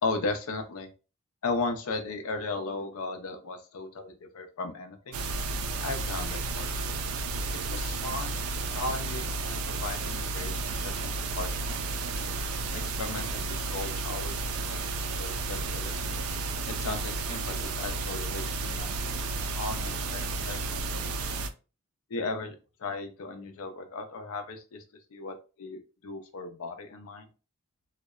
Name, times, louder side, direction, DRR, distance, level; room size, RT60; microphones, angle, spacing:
voice 1, 0.0-0.9 1.4-5.2 5.8-6.7 7.6-8.4 8.7-11.8 12.7-15.9 16.7-18.9 19.5-21.1 22.1-24.8 25.1-27.3, left 3 dB, 75° left, 6 dB, 0.4 m, -36 dB
sound 1, 5.1-21.5, right 3 dB, 75° right, 0.3 m, -32 dB
2.7 x 2.1 x 2.3 m, 0.33 s
head